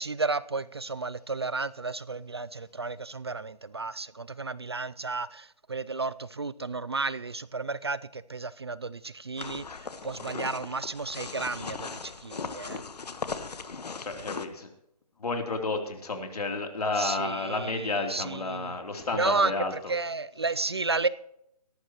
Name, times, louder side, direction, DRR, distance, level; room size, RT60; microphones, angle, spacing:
voice 1, 0.0-12.8 17.0-18.8 19.1-21.1, right 3 dB, 40° right, 0.4 m, -32 dB
sound 1, 9.4-14.5, left 4 dB, 90° left, 1.3 m, -38 dB
voice 2, 14.0-14.7 15.2-19.7, left 3 dB, 70° left, 3.3 m, -31 dB
18.0 x 14.0 x 3.0 m
hypercardioid pair, 180°, 20 cm